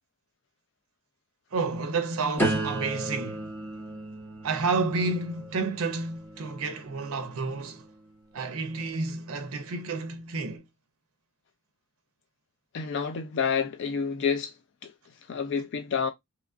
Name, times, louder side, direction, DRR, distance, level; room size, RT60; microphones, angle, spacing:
voice 1, 1.5-3.5 4.4-7.9 8.3-10.6, right 3 dB, 70° right, 0.5 m, -30 dB
sound 1, 2.4-8.2 8.8-9.2, right 1 dB, 10° left, 0.9 m, -35 dB
voice 2, 12.7-16.1, left 6 dB, 55° left, 0.3 m, -29 dB
2.9 x 2.4 x 2.4 m
head